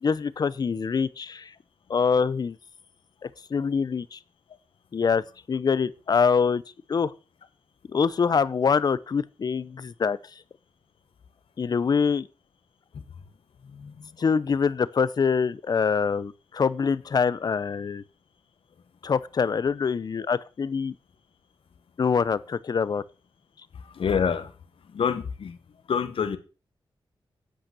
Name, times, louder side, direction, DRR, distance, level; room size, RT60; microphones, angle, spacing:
voice 1, 0.0-1.5 1.9-2.6 3.2-4.2 4.9-5.2 5.5-6.6 6.9-7.1 7.9-10.2 11.6-12.3 14.2-18.0 19.0-20.9 22.0-23.0, left 5 dB, 45° left, 0.6 m, -24 dB
voice 2, 13.6-14.1 23.8-24.5 24.9-25.6 25.9-26.4, left 6 dB, 85° left, 1.3 m, -27 dB
8.9 x 8.0 x 6.1 m
wide cardioid pair, 170°, 9 cm